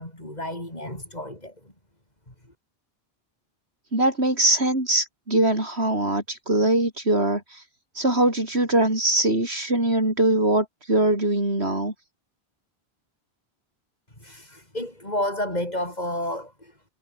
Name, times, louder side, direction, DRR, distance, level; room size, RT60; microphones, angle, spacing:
voice 1, 0.0-1.5 2.3-2.4 14.2-16.9, left 1 dB, 40° left, 7.7 m, -31 dB
voice 2, 3.9-7.6 7.9-11.9, right 1 dB, 85° right, 6.7 m, -22 dB
omnidirectional pair, 1.1 m